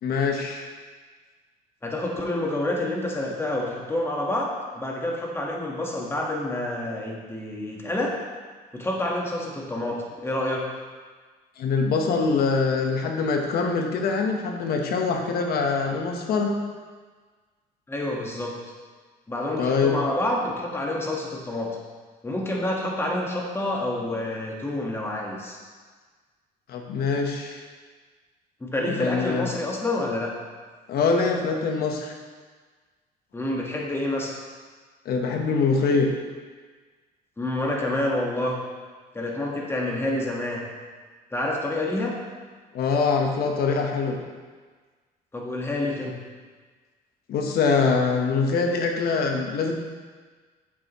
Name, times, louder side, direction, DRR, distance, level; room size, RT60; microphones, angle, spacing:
voice 1, 0.0-0.7 11.6-16.6 19.6-20.0 26.7-27.6 28.8-29.5 30.9-32.1 35.0-36.1 42.7-44.2 47.3-49.7, left 4 dB, 65° left, 3 dB, 1.1 m, -24 dB
voice 2, 1.8-8.1 8.7-10.7 17.9-18.6 19.3-21.8 22.2-25.6 28.6-30.4 33.3-34.4 37.4-38.6 39.1-40.6 41.3-42.2 45.3-46.2, left 1 dB, 15° left, -1 dB, 1.5 m, -28 dB
8.7 x 7.1 x 3.1 m, 1.5 s
cardioid pair, 110°, 17 cm